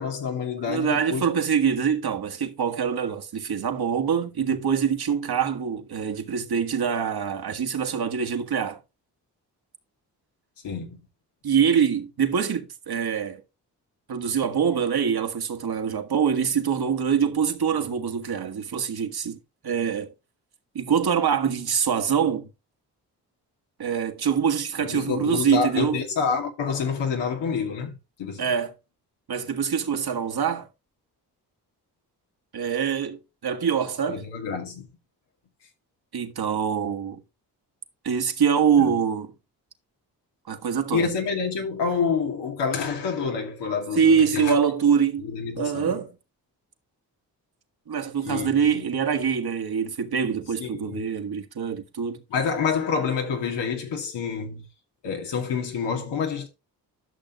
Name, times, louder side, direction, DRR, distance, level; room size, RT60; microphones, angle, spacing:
voice 1, 0.0-1.3 10.6-11.0 24.8-28.5 34.1-34.9 38.8-38.9 40.9-44.5 45.2-46.0 48.2-48.8 50.6-51.1 52.3-54.7 55.0-56.5, left 6 dB, 90° left, 2.4 m, -28 dB
voice 2, 0.7-8.8 11.4-13.4 14.1-19.4 19.6-20.1 20.8-22.5 23.8-26.0 28.4-28.7 29.3-30.7 32.5-34.2 36.1-37.2 38.0-39.3 40.5-41.1 43.9-45.3 45.6-46.1 47.9-52.2, right 7 dB, 65° right, 1.8 m, -24 dB
12.0 x 6.4 x 3.0 m
cardioid pair, 55°, 41 cm